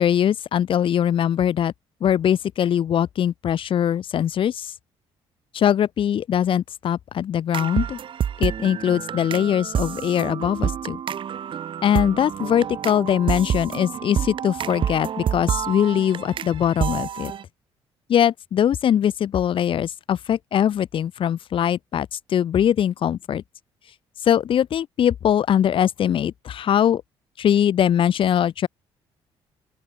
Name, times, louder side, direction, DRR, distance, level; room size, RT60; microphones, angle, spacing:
voice 1, 0.0-1.7 2.0-4.7 5.5-8.0 8.4-11.0 11.8-17.3 18.1-23.4 24.2-27.0 27.4-28.7, left 9 dB, 60° left, 1.7 m, -21 dB
sound 1, 7.5-17.4, right 9 dB, 55° right, 3.2 m, -28 dB
open air
cardioid pair, 95°, 10 cm